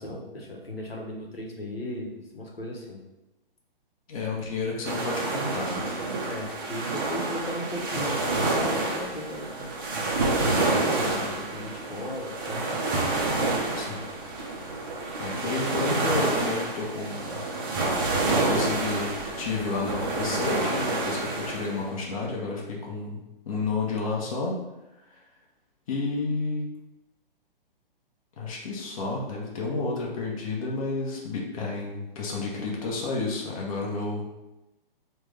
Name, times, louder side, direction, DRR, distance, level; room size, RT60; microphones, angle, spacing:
voice 1, 0.0-3.0 6.3-9.7 10.3-12.6, left 1 dB, 85° left, -1 dB, 0.8 m, -36 dB
voice 2, 4.1-5.8 13.8-14.0 15.2-17.4 18.3-24.6 25.1-25.2 25.9-26.6 28.4-34.3, left 3 dB, 35° left, -2 dB, 0.7 m, -31 dB
sound 1, 4.8-21.8, right 2 dB, 25° right, 0.4 m, -28 dB
3.3 x 2.2 x 3.3 m, 0.96 s
figure-of-eight pair, 125°, 29 cm